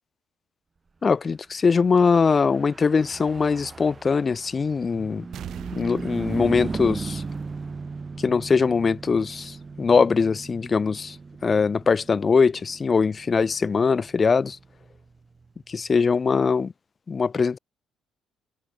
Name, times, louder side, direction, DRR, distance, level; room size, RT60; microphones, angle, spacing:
voice 1, 1.0-5.3 5.7-7.2 8.2-11.2 11.4-14.6 15.7-16.7 17.1-17.6, left 5 dB, 40° left, 0.6 m, -22 dB
Car passing by / Truck, 2.2-15.9, right 4 dB, 35° right, 2.1 m, -37 dB
sound 1, 5.3-7.9 8.3-8.4, right 11 dB, 65° right, 5.4 m, -42 dB
supercardioid pair, 60°, 0 cm